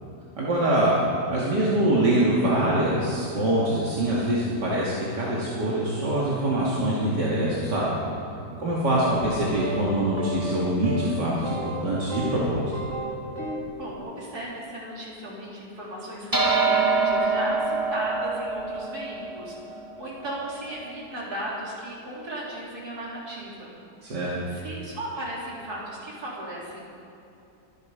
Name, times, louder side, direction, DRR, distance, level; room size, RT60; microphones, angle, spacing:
voice 1, 0.4-1.0 1.3-7.9 8.6-12.7 24.0-24.3, right 1 dB, 80° right, -7 dB, 2.9 m, -24 dB
voice 2, 8.4-8.8 13.7-23.7 24.0-24.2 24.5-26.8, right 1 dB, 60° right, -5 dB, 4.2 m, -36 dB
sound 1, 8.9-9.3 9.6-9.9 10.2-10.6 10.8-11.1 11.4-12.4 12.7-13.7, right 2 dB, 45° right, 2.3 m, -33 dB
sound 2, 16.3-21.0, right 4 dB, 10° right, 2.1 m, -25 dB
23.5 x 11.0 x 5.1 m, 2.9 s
omnidirectional pair, 1.8 m